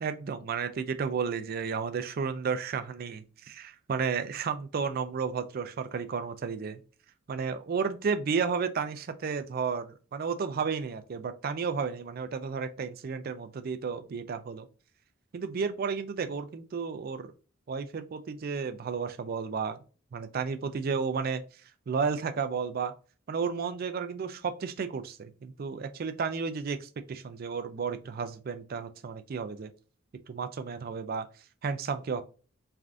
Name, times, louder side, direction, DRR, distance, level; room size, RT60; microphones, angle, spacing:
voice 1, 0.0-6.8 7.3-14.7 15.3-17.3 17.7-19.8 20.1-21.4 21.9-22.9 23.3-29.7 30.3-31.3 31.6-32.2, right 5 dB, 45° right, 10 dB, 0.3 m, -32 dB
3.3 x 2.5 x 2.4 m, 0.36 s
head